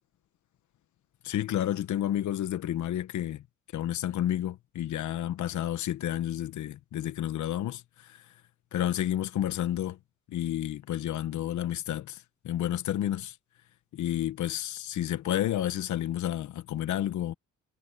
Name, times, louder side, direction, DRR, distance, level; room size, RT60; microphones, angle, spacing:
voice 1, 1.2-3.4 3.7-8.2 8.7-10.0 10.3-13.3 13.9-17.3, left 12 dB, 75° left, 1.2 m, -31 dB
cardioid pair, 90°, 30 cm